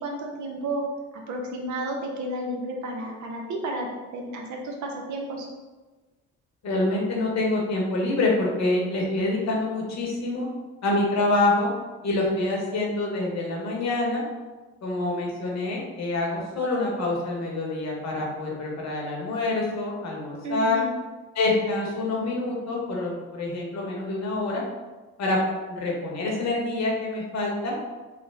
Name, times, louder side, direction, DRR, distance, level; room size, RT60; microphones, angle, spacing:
voice 1, 0.0-0.8 1.3-3.9 4.1-5.5 20.4-20.9, right 1 dB, 60° right, 0 dB, 0.7 m, -32 dB
voice 2, 6.6-10.5 10.8-11.7 12.0-14.2 14.8-20.8 21.3-24.6 25.2-25.4 25.6-27.7, left 2 dB, 55° left, -2 dB, 1.0 m, -26 dB
3.3 x 2.1 x 3.3 m, 1.2 s
supercardioid pair, 60°, 32 cm